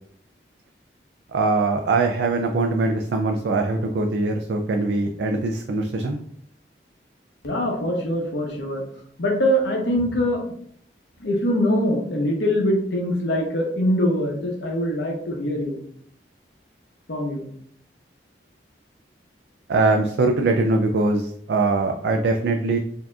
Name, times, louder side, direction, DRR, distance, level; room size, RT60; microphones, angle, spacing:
voice 1, 1.3-6.2 19.7-22.8, right 3 dB, 75° right, 3 dB, 0.3 m, -22 dB
voice 2, 7.4-8.8 9.2-10.4 11.2-15.8 17.1-17.5, equal, 80° left, 0 dB, 0.9 m, -23 dB
4.6 x 2.8 x 2.3 m, 0.66 s
head